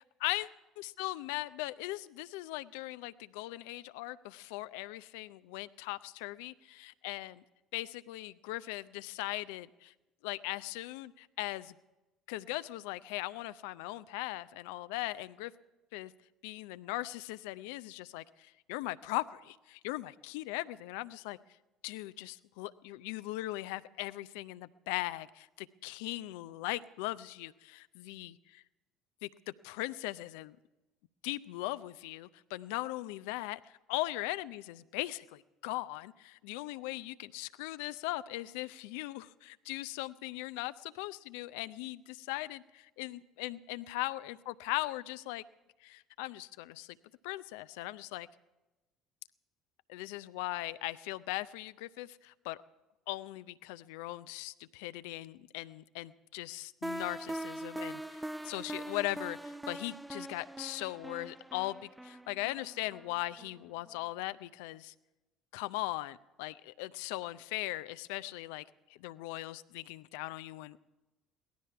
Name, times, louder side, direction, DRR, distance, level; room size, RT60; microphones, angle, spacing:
voice 1, 0.2-7.4 7.7-9.9 10.2-11.7 12.3-15.5 15.9-16.1 16.4-21.4 21.8-28.6 29.2-29.3 29.6-30.6 31.2-33.6 33.9-45.4 45.8-47.0 47.2-48.3 49.9-52.6 53.1-64.9 65.5-68.6 68.9-70.8, left 18 dB, 75° left, 16 dB, 0.4 m, -39 dB
sound 1, 56.8-63.6, right 1 dB, 5° right, 0.5 m, -42 dB
18.0 x 13.0 x 5.8 m, 1.0 s
hypercardioid pair, 60°, 0 cm